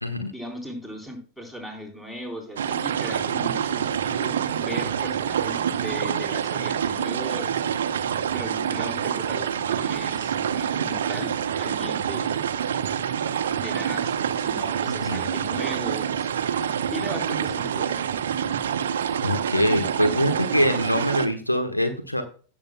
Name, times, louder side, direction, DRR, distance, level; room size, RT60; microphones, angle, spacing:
voice 1, 0.3-7.5 8.3-12.4 13.5-16.3 16.6-18.2, equal, 10° left, 3 dB, 3.6 m, -38 dB
sound 1, 2.6-21.3, right 8 dB, 65° right, 0.8 m, -27 dB
voice 2, 19.2-22.2, equal, 90° left, 6 dB, 1.2 m, -23 dB
17.0 x 7.4 x 2.2 m, 0.38 s
figure-of-eight pair, 90°, 0 cm